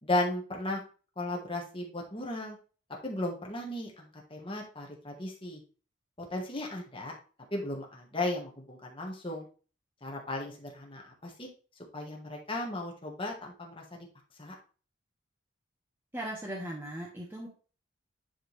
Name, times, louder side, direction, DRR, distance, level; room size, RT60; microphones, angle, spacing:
voice 1, 0.0-0.8 1.2-2.6 3.0-5.6 6.3-7.1 7.5-9.5 10.0-11.5 11.9-14.1 14.4-14.5, left 1 dB, 25° left, 0 dB, 1.7 m, -35 dB
voice 2, 16.1-17.5, right 1 dB, 10° right, -3 dB, 1.1 m, -38 dB
10.0 x 3.7 x 3.3 m, 0.37 s
head